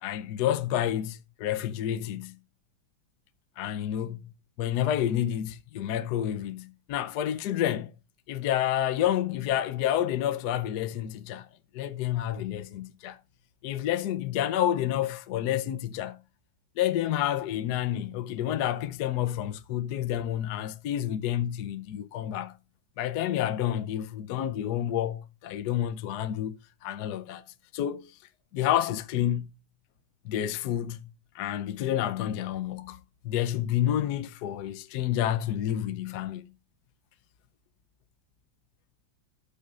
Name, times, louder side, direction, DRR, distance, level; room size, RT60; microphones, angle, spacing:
voice 1, 0.0-2.3 3.6-4.3 4.6-7.9 8.3-11.5 11.7-13.2 13.6-16.2 16.8-22.5 23.0-26.6 26.8-27.4 27.7-28.1 28.5-29.5 30.2-33.0 33.2-36.4, left 11 dB, 65° left, 1.1 m, -29 dB
17.0 x 6.5 x 2.4 m
omnidirectional pair, 2.1 m